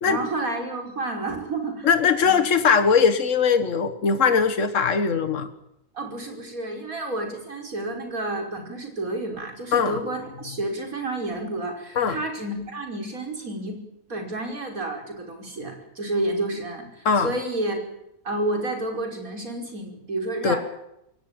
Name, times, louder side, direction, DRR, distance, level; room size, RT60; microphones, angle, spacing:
voice 1, 0.0-1.9 2.2-2.4 5.9-13.8 14.1-17.8 18.2-20.6, right 2 dB, 85° right, 3 dB, 5.8 m, -30 dB
voice 2, 1.8-5.5 9.7-10.0 12.0-12.2 17.1-17.3 20.4-20.6, left 6 dB, 65° left, 10 dB, 1.9 m, -20 dB
22.5 x 18.5 x 9.0 m, 0.84 s
omnidirectional pair, 1.4 m